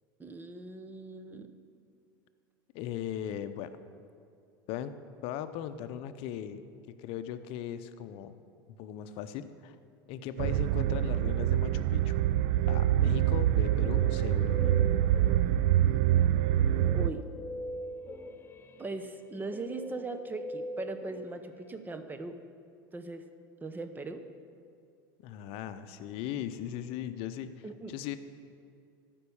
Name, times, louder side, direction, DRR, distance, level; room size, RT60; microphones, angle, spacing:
voice 1, 0.2-1.5 16.9-17.3 18.8-22.4 22.9-23.3 23.6-24.2 27.6-27.9, right 3 dB, 15° right, 9 dB, 0.8 m, -39 dB
voice 2, 2.7-3.8 4.7-5.0 5.2-6.7 7.0-8.4 8.8-9.8 10.1-12.3 12.7-14.7 25.2-28.2, left 10 dB, 55° left, 11 dB, 0.7 m, -38 dB
sound 1, 10.4-17.1, right 12 dB, 60° right, 0.4 m, -25 dB
Guitar, 13.3-15.8 16.6-22.0, equal, 20° left, 0.7 m, -43 dB
13.0 x 5.4 x 7.0 m, 2.4 s
hypercardioid pair, 100°, 12 cm